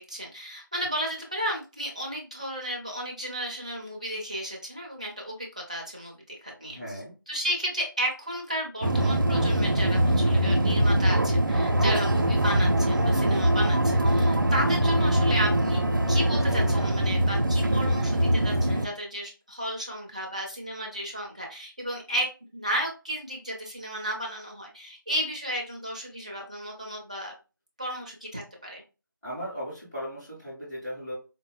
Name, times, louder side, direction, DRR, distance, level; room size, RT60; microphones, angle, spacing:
voice 1, 0.0-7.0 7.3-15.8 16.1-27.3 27.8-28.8, equal, 20° right, -1 dB, 0.5 m, -33 dB
voice 2, 6.7-7.1 29.2-31.1, equal, 5° left, -11 dB, 0.9 m, -37 dB
sound 1, 8.8-18.9, right 1 dB, 65° right, 0.5 m, -23 dB
4.4 x 2.1 x 2.3 m, 0.31 s
figure-of-eight pair, 170°, 11 cm